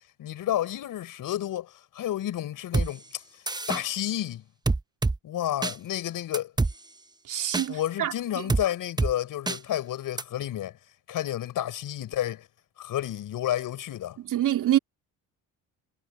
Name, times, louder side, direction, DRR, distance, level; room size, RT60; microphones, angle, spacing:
voice 1, 0.2-4.4 5.2-6.5 7.7-10.8 11.1-12.5 12.8-14.2, left 12 dB, 65° left, 6.3 m, -31 dB
sound 1, 2.7-2.9 3.5-3.8 4.7-5.2 5.6-5.7 6.3-6.7 7.5-7.7 8.5-8.6 9.0-9.1 9.5-9.6 10.2-10.3, right 3 dB, 10° right, 0.8 m, -25 dB
voice 2, 7.3-8.1 14.3-14.8, right 12 dB, 60° right, 2.6 m, -25 dB
supercardioid pair, 80°, 35 cm